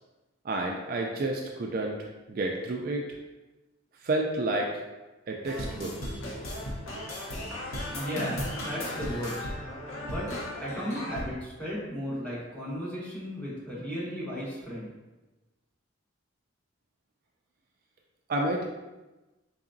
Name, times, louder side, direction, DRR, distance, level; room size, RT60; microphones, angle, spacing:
voice 1, 0.4-1.9 2.3-3.0 4.0-4.8 5.3-6.1 18.3-18.6, right 2 dB, 45° right, 1 dB, 0.3 m, -30 dB
sound 1, 5.4-11.3, left 1 dB, 85° left, 0.8 m, -36 dB
voice 2, 7.9-9.5 10.0-10.3 10.6-14.9, equal, 5° left, -8 dB, 1.0 m, -35 dB
3.8 x 3.3 x 2.6 m, 1.1 s
head